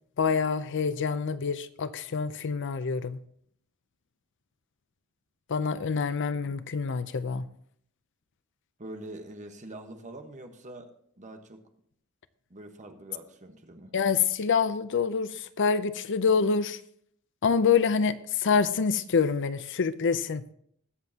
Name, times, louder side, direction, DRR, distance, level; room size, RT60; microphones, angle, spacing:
voice 1, 0.2-3.2 5.5-7.5 13.9-16.8 17.4-20.4, left 5 dB, 60° left, 0.6 m, -26 dB
voice 2, 8.8-10.9 11.2-11.6 12.5-13.9, right 1 dB, 35° right, 1.3 m, -44 dB
21.0 x 7.4 x 2.9 m
head